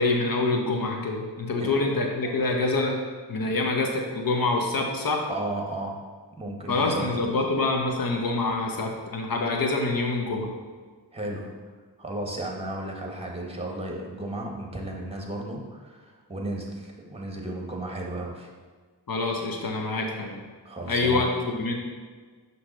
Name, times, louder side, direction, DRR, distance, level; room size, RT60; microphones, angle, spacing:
voice 1, 0.0-3.0 3.3-5.2 6.7-10.5 19.1-20.4 20.9-21.7, left 3 dB, 55° left, 2 dB, 1.0 m, -26 dB
voice 2, 5.3-6.0 6.4-7.4 11.1-11.5 12.0-18.5 20.6-21.2, right 1 dB, 15° right, 0 dB, 1.4 m, -34 dB
5.9 x 3.2 x 5.4 m, 1.5 s
cardioid pair, 45°, 43 cm